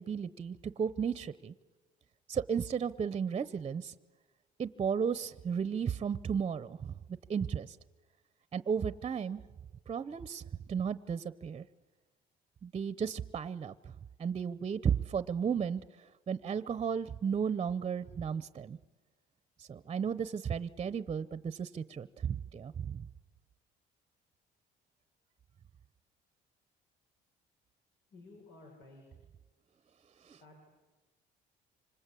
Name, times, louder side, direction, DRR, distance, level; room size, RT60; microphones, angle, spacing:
voice 1, 0.0-1.5 2.3-3.9 4.6-6.9 7.3-7.8 8.5-9.4 9.9-10.4 10.7-11.6 12.6-13.7 14.2-15.8 16.3-18.8 19.6-23.1 30.3-30.4, right 7 dB, 30° right, 16 dB, 0.8 m, -34 dB
voice 2, 28.1-29.0 30.4-30.6, left 2 dB, 85° left, 1 dB, 6.4 m, -54 dB
26.0 x 25.5 x 8.4 m, 1.2 s
cardioid pair, 110°, 17 cm